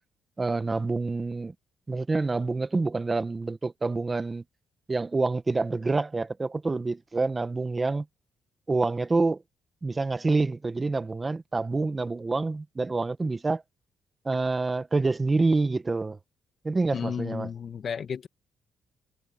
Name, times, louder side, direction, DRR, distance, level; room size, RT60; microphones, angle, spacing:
voice 1, 0.4-1.5 1.9-4.4 4.9-8.0 8.7-9.4 9.8-13.6 14.2-16.2 16.6-17.5, right 3 dB, 25° right, 1.4 m, -27 dB
voice 2, 16.9-18.3, left 7 dB, 50° left, 1.6 m, -33 dB
cardioid pair, 90°, 0 cm